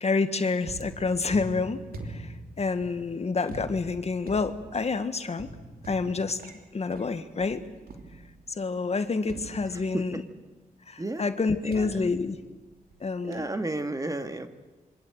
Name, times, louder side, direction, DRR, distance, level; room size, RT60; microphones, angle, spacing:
voice 1, 0.0-1.8 2.1-5.5 5.9-6.4 6.7-7.6 8.5-10.2 10.9-12.4 13.0-13.4, left 4 dB, 45° left, 9 dB, 1.7 m, -28 dB
sound 1, 0.6-8.6 9.3-10.3 11.7-13.0 13.3-13.7, right 2 dB, 85° right, 3.1 m, -44 dB
voice 2, 11.6-12.0 13.2-14.5, right 2 dB, 25° right, 8 dB, 2.0 m, -32 dB
27.0 x 24.0 x 8.1 m, 1.2 s
cardioid pair, 80°, 15 cm